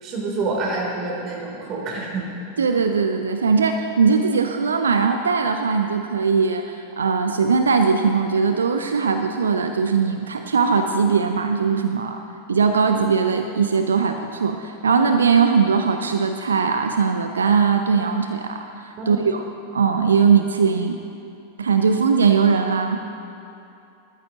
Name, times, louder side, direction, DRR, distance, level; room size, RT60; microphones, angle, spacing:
voice 1, 0.0-2.3 19.0-19.2, right 3 dB, 35° right, -2 dB, 3.2 m, -27 dB
voice 2, 2.6-12.2 12.5-19.4 19.7-21.0 21.6-23.0, right 5 dB, 70° right, 6 dB, 0.6 m, -20 dB
19.0 x 13.5 x 2.9 m, 2.7 s
figure-of-eight pair, 90°, 0 cm